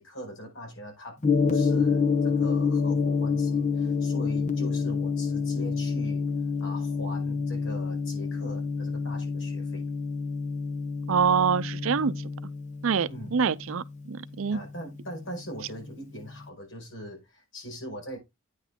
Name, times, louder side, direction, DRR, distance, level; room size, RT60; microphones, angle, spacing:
voice 1, 0.0-6.3 6.6-9.8 13.1-13.4 14.5-18.2, equal, 65° left, 5.2 m, -41 dB
Gong, 1.2-15.4, left 5 dB, 35° left, 1.0 m, -28 dB
voice 2, 11.1-12.1 12.8-14.6, right 6 dB, 75° right, 0.5 m, -25 dB
9.3 x 5.9 x 3.6 m
head